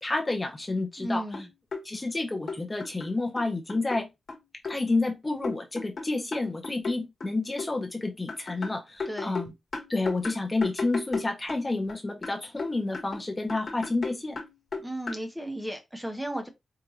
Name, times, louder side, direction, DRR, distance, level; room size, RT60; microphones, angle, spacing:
voice 1, 0.0-1.2 1.8-4.1 4.7-9.5 9.9-14.4, left 2 dB, 25° left, 0.7 m, -29 dB
sound 1, 1.0-1.1 1.3-1.8 2.5-4.0 4.3-4.8 5.4-7.7 8.3-11.9 12.2-15.3, left 4 dB, 55° left, 1.3 m, -36 dB
voice 2, 1.0-1.5 9.1-9.3 14.8-16.5, right 1 dB, 5° right, 0.9 m, -34 dB
4.7 x 2.5 x 2.8 m
wide cardioid pair, 100°, 0 cm